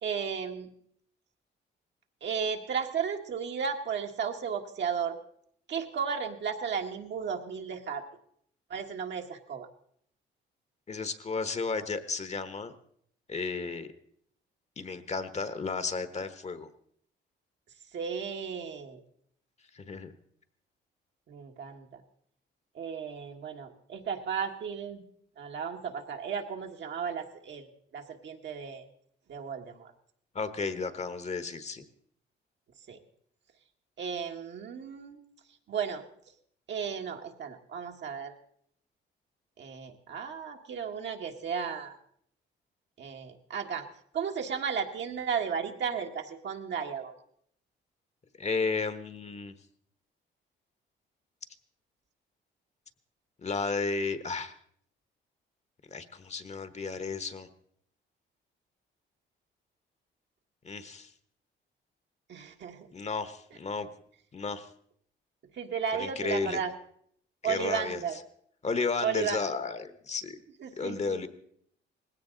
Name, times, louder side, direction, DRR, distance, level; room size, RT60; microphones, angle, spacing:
voice 1, 0.0-0.7 2.2-5.2 5.7-8.0 8.7-9.7 17.9-19.0 21.3-22.0 22.7-25.0 25.4-27.7 27.9-28.8 29.3-29.9 32.9-33.0 34.0-35.2 35.7-36.0 36.7-38.3 39.6-42.0 43.0-43.9 44.1-47.1 62.3-62.9 65.5-66.7 67.4-68.2 69.0-69.4 70.6-71.3, right 7 dB, 65° right, 3 dB, 1.6 m, -34 dB
voice 2, 10.9-12.7 13.3-13.9 14.8-16.7 19.7-20.1 30.3-31.8 48.4-49.5 53.4-54.6 55.9-57.5 60.6-61.1 62.9-63.9 64.3-64.7 66.0-66.6 67.4-68.0 68.6-70.4 70.8-71.3, left 4 dB, 35° left, 11 dB, 1.2 m, -33 dB
19.0 x 16.5 x 3.9 m, 0.66 s
cardioid pair, 90°, 20 cm